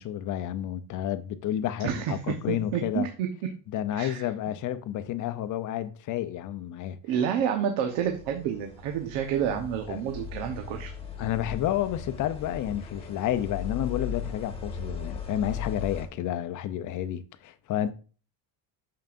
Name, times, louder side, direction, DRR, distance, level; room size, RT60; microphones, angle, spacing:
voice 1, 0.0-3.1 3.7-7.0 9.9-10.0 11.2-17.9, left 11 dB, 40° left, 0.6 m, -30 dB
voice 2, 1.8-3.3 3.9-4.2 7.1-10.9, right 8 dB, 85° right, 1.1 m, -29 dB
sound 1, 8.0-16.1, left 6 dB, 10° left, 1.2 m, -38 dB
9.0 x 6.8 x 2.5 m
cardioid pair, 170°, 46 cm